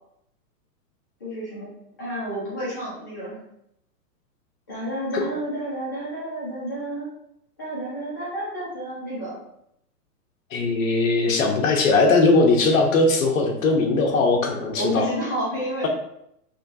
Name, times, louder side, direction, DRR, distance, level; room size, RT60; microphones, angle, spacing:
voice 1, 1.2-1.7 2.0-3.4 4.7-7.1 7.6-9.4 14.8-15.9, equal, 15° left, -9 dB, 0.4 m, -30 dB
voice 2, 10.5-15.1, left 3 dB, 55° left, 2 dB, 0.8 m, -19 dB
5.1 x 2.3 x 2.5 m, 0.77 s
hypercardioid pair, 155°, 48 cm